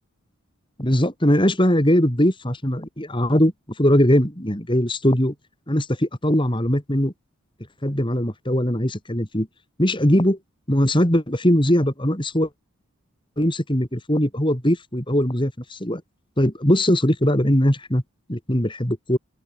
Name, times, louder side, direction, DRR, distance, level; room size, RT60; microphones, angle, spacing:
voice 1, 0.8-3.5 3.8-5.3 5.7-7.1 7.8-9.5 9.8-10.4 10.7-12.5 13.4-16.0 16.4-18.0 18.3-19.2, equal, 20° left, 3.6 m, -20 dB
open air
head